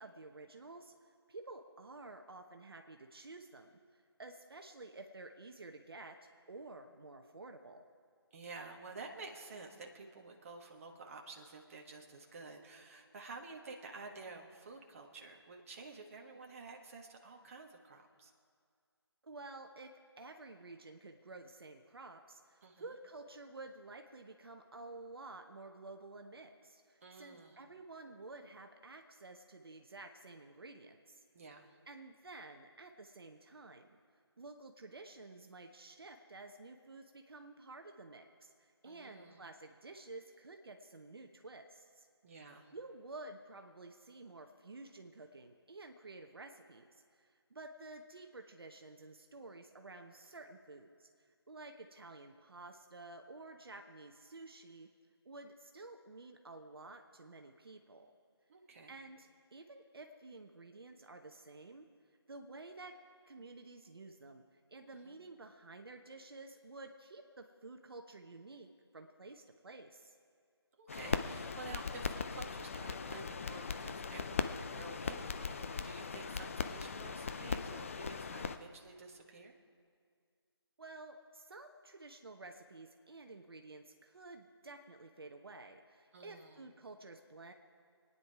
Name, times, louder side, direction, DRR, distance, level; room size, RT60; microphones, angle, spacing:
voice 1, 0.0-7.8 19.2-31.2 31.9-34.0 34.4-42.1 42.7-51.1 51.5-54.9 55.2-58.1 58.9-61.9 62.3-62.9 63.3-64.4 64.7-70.2 80.8-87.5, right 2 dB, 60° right, 4 dB, 1.1 m, -52 dB
voice 2, 8.3-18.3 22.6-22.9 27.0-27.6 31.3-31.8 38.8-39.4 42.2-42.7 58.5-59.0 64.9-65.2 70.8-79.5 86.1-86.7, right 3 dB, 30° right, 1 dB, 1.4 m, -51 dB
sound 1, 70.9-78.6, left 5 dB, 30° left, 0.5 m, -39 dB
26.0 x 9.8 x 4.7 m, 2.1 s
figure-of-eight pair, 160°, 14 cm